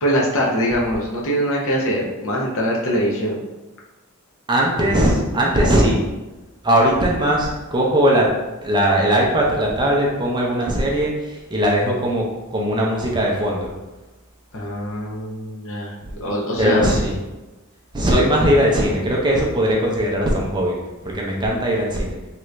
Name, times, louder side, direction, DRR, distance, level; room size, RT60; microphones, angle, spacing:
voice 1, 0.0-3.4 14.5-15.9 16.2-16.9, equal, 60° left, -3 dB, 0.7 m, -22 dB
voice 2, 4.5-6.0 6.6-8.3 8.6-12.3 12.5-13.7 16.0-16.1 16.6-17.1 17.9-20.8 21.0-22.2, equal, 20° right, -2 dB, 0.5 m, -19 dB
3.0 x 2.5 x 3.1 m, 1.1 s
head